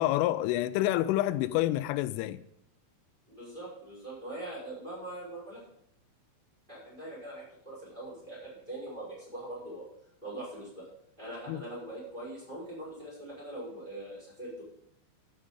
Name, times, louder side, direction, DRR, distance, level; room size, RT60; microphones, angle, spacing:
voice 1, 0.0-2.4 11.5-11.6, left 15 dB, 90° left, 3.1 m, -28 dB
voice 2, 3.3-5.6 6.7-9.8 10.2-10.9 11.2-14.6, right 1 dB, 10° right, 5.5 m, -42 dB
14.0 x 7.6 x 5.2 m
omnidirectional pair, 5.5 m